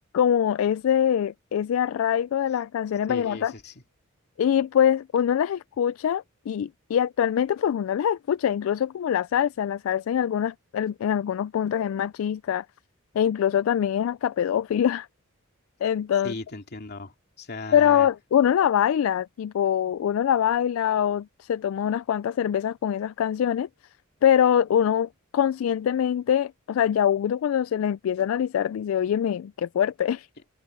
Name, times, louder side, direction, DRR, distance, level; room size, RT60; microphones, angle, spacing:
voice 1, 0.1-3.5 4.4-12.6 13.1-15.1 15.8-16.4 17.7-23.7 24.2-30.3, left 9 dB, 75° left, 0.3 m, -24 dB
voice 2, 3.1-3.7 16.2-18.1, left 2 dB, 50° left, 2.7 m, -37 dB
head